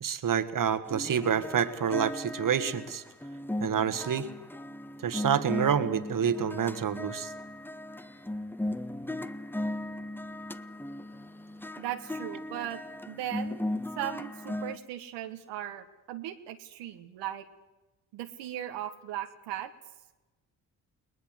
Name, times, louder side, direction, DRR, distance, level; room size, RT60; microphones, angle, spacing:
voice 1, 0.0-3.0 3.6-4.3 5.0-7.3, right 8 dB, 50° right, 11 dB, 1.8 m, -28 dB
sound 1, 0.9-14.8, left 1 dB, 5° left, 1.0 m, -37 dB
voice 2, 11.8-12.8 13.1-13.7 14.0-17.4 18.1-19.7, right 12 dB, 85° right, 5 dB, 1.5 m, -37 dB
22.0 x 19.5 x 8.1 m, 1.1 s
supercardioid pair, 60°, 41 cm